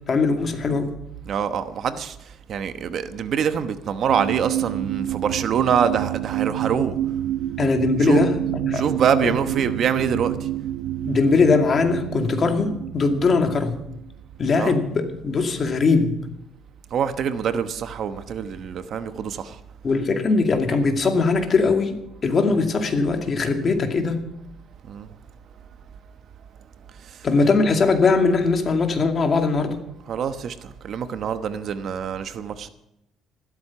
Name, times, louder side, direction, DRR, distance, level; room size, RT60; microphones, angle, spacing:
voice 1, 0.1-0.9 7.6-8.8 9.2-9.3 11.1-13.8 14.4-16.1 19.8-24.2 27.2-29.8, left 4 dB, 35° left, 2.2 m, -20 dB
voice 2, 1.2-2.2 2.5-7.0 8.0-8.2 8.7-10.5 14.5-14.8 16.9-19.6 24.9-25.1 27.0-27.3 30.1-32.7, right 7 dB, 50° right, 1.0 m, -25 dB
sound 1, 4.1-14.1 14.7-14.8, right 13 dB, 90° right, 0.7 m, -28 dB
14.5 x 13.0 x 5.9 m
cardioid pair, 135°, 0 cm